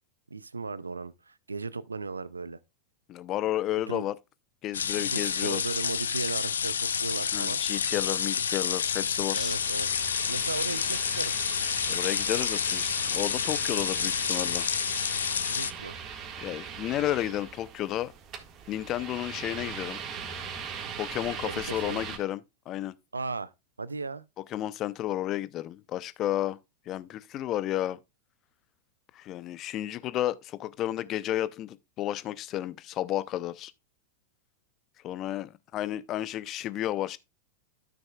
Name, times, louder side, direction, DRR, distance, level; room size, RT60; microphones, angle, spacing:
voice 1, 0.3-2.6 3.9-4.0 5.1-7.6 9.3-9.9 10.3-11.3 15.5-16.0 21.4-22.0 23.1-23.5 23.8-24.2, right 4 dB, 90° right, 0.5 m, -36 dB
voice 2, 3.1-4.2 4.6-5.6 7.3-9.6 11.9-14.7 16.4-18.1 18.7-20.0 21.0-22.4 22.7-22.9 24.5-26.6 26.9-28.0 29.1-33.7 35.0-37.2, left 13 dB, 40° left, 0.6 m, -32 dB
sound 1, 4.7-15.7, left 7 dB, 75° left, 0.5 m, -29 dB
sound 2, 9.4-22.2, right 7 dB, 35° right, 1.7 m, -40 dB
13.0 x 6.2 x 2.3 m
figure-of-eight pair, 95°, 0 cm